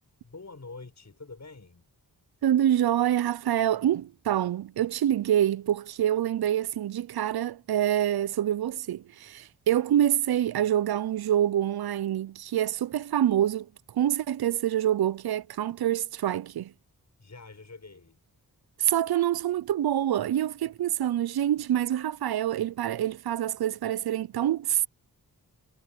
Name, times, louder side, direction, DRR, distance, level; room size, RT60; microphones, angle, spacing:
voice 1, 0.2-1.9 17.2-18.2, left 3 dB, 45° left, 7.1 m, -46 dB
voice 2, 2.4-16.7 18.8-24.9, right 11 dB, 75° right, 0.5 m, -26 dB
wide cardioid pair, 95°, 38 cm